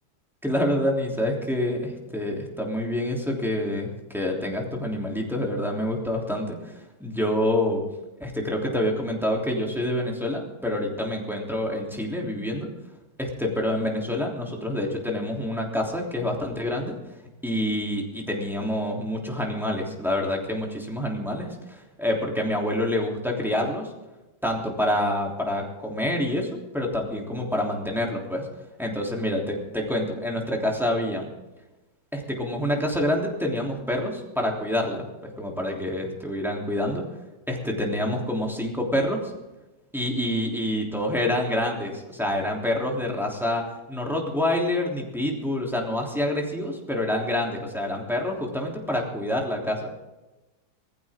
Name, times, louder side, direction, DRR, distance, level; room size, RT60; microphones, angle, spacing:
voice 1, 0.4-7.8 8.2-12.7 13.2-17.0 17.4-23.9 24.4-28.5 28.8-31.3 32.1-37.0 37.5-39.3 39.9-49.9, left 1 dB, ahead, -1 dB, 3.1 m, -27 dB
20.0 x 14.5 x 3.7 m, 1.1 s
omnidirectional pair, 2.2 m